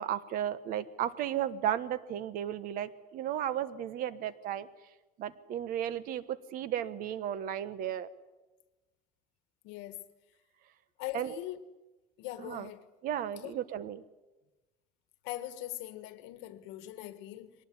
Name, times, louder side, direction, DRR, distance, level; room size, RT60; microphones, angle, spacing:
voice 1, 0.0-4.7 5.2-8.1 11.1-11.4 12.4-12.7 13.0-14.0, right 10 dB, 50° right, 1.3 m, -34 dB
voice 2, 9.6-10.0 11.0-11.6 12.2-12.8 13.4-13.5 15.2-17.5, left 15 dB, 85° left, 1.7 m, -41 dB
22.5 x 19.0 x 9.8 m
cardioid pair, 170°, 18 cm